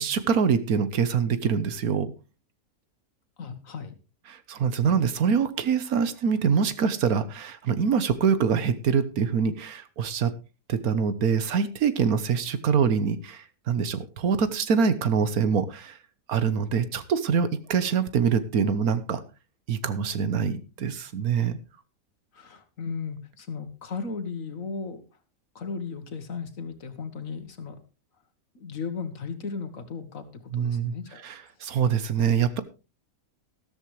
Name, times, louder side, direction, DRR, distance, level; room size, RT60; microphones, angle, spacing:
voice 1, 0.0-2.1 4.3-10.3 10.7-16.0 16.3-19.2 19.7-21.6 30.5-30.9 31.2-32.6, right 6 dB, 80° right, 13 dB, 1.5 m, -25 dB
voice 2, 3.4-3.9 22.3-25.0 25.6-27.8 28.6-31.5, left 5 dB, 65° left, 9 dB, 1.9 m, -36 dB
13.5 x 13.0 x 3.2 m, 0.31 s
omnidirectional pair, 1.5 m